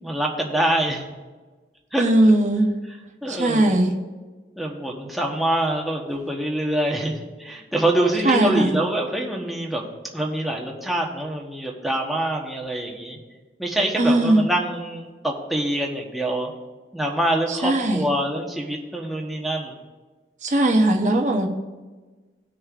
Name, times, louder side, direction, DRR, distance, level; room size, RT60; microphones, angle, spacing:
voice 1, 0.0-1.0 1.9-2.1 3.2-3.8 4.6-9.8 10.1-13.2 13.6-16.5 16.9-19.8, right 1 dB, ahead, -2 dB, 1.0 m, -25 dB
voice 2, 2.0-2.7 3.3-3.9 8.2-8.8 13.9-14.5 17.5-18.0 20.4-21.5, right 1 dB, 45° right, 2 dB, 0.8 m, -19 dB
18.5 x 6.4 x 2.5 m, 1.3 s
head